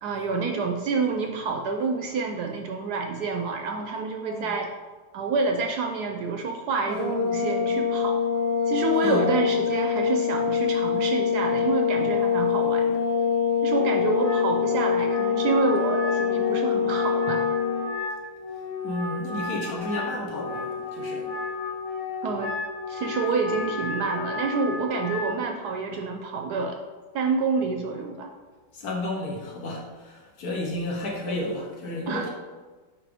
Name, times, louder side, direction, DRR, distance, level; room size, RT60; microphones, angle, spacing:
voice 1, 0.0-4.7 5.1-8.2 8.7-13.0 13.6-17.4 22.2-22.5 22.9-26.8 27.1-28.3 32.1-32.3, right 4 dB, 70° right, 4 dB, 1.0 m, -28 dB
sound 1, 6.9-17.9, left 7 dB, 10° left, 1.4 m, -24 dB
Wind instrument woodwind instrument, 13.7-25.4, left 2 dB, 85° left, 2.0 m, -32 dB
voice 2, 18.8-21.3 28.7-32.3, left 1 dB, 55° left, 0 dB, 1.4 m, -32 dB
9.0 x 3.8 x 3.5 m, 1.3 s
omnidirectional pair, 2.0 m